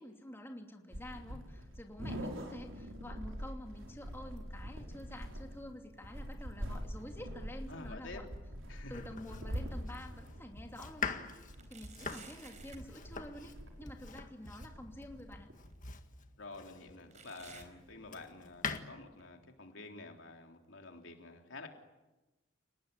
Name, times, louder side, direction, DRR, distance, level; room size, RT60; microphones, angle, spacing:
voice 1, 0.0-8.2 8.9-15.5, left 1 dB, 10° left, 2 dB, 2.8 m, -49 dB
sound 1, 0.9-15.7, equal, 85° right, 5.3 m, -45 dB
sound 2, 7.0-7.7 8.0-9.9 10.4-10.5 11.5-12.9 14.6-14.7 15.7-15.8 17.1-18.5 18.8-19.2 19.9-20.0 20.9-21.0, right 4 dB, 40° right, 4.3 m, -57 dB
voice 2, 7.7-8.2 8.7-9.2 16.4-21.7, left 3 dB, 75° left, 3 dB, 3.7 m, -49 dB
Domestic sounds home sounds, 8.9-17.1 17.7-18.8, left 5 dB, 40° left, 1.8 m, -44 dB
29.5 x 19.5 x 9.8 m, 1.1 s
head